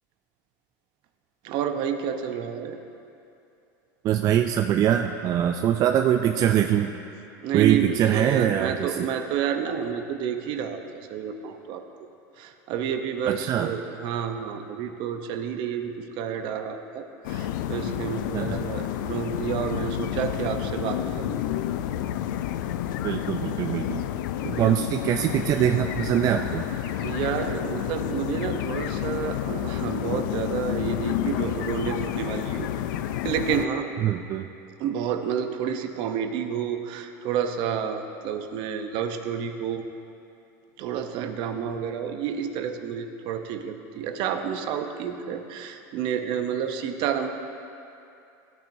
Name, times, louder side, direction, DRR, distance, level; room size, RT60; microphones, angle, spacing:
voice 1, 1.4-2.8 7.4-10.8 11.1-11.8 12.4-21.4 24.4-24.9 27.0-32.7 33.2-33.9 34.8-39.8 40.8-47.3, right 8 dB, 50° right, 6 dB, 0.8 m, -30 dB
voice 2, 4.0-6.9 7.5-9.0 13.3-13.7 18.3-18.7 23.0-24.1 24.4-26.6 34.0-34.5, right 10 dB, 35° right, 6 dB, 0.3 m, -23 dB
sound 1, 17.2-33.7, left 12 dB, 80° left, 0.4 m, -30 dB
16.0 x 8.9 x 2.7 m, 2.7 s
supercardioid pair, 135°, 10 cm